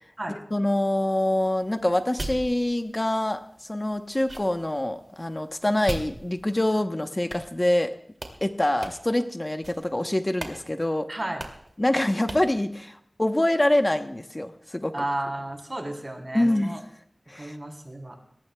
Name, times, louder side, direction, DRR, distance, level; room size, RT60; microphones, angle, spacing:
voice 1, 0.3-3.4 3.7-7.9 8.4-11.1 11.8-14.9 16.3-16.8 17.3-17.6, left 1 dB, 35° left, 6 dB, 0.9 m, -25 dB
sound 1, 1.4-6.8 7.3-8.4 8.8-9.2 9.6-10.0 10.4-10.6 10.8-10.9 11.4-11.7 12.3-12.5, right 2 dB, 60° right, 2.5 m, -40 dB
voice 2, 11.1-11.4 14.9-16.8 17.4-18.2, right 1 dB, 45° right, 2 dB, 3.6 m, -32 dB
22.0 x 19.0 x 2.3 m, 0.67 s
wide cardioid pair, 45°, 0 cm